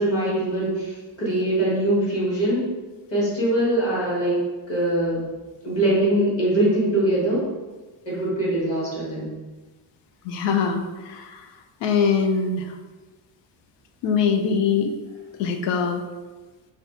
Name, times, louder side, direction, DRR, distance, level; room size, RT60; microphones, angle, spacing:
voice 1, 0.0-2.7 3.1-4.4 4.7-5.3 5.6-7.5 8.1-9.3, right 1 dB, 30° left, -6 dB, 1.1 m, -22 dB
voice 2, 10.2-11.5 11.8-12.8 14.0-15.0 15.4-16.0, left 6 dB, 75° left, 6 dB, 0.5 m, -23 dB
2.5 x 2.3 x 3.6 m, 1.2 s
cardioid pair, 160°, 43 cm